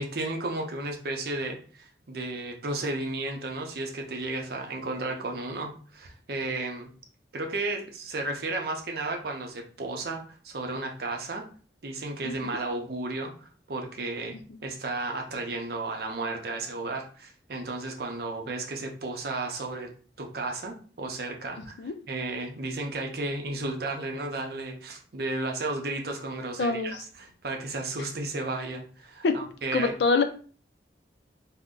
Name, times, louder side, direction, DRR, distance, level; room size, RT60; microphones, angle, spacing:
voice 1, 0.0-6.9 7.3-11.4 11.8-14.4 14.6-19.9 20.2-29.9, right 2 dB, 60° right, 2 dB, 0.6 m, -33 dB
voice 2, 12.2-12.6 14.5-14.6 21.8-21.9 26.6-27.0 29.2-29.3 29.7-30.2, left 4 dB, 70° left, 8 dB, 0.4 m, -25 dB
2.6 x 2.1 x 3.6 m, 0.41 s
head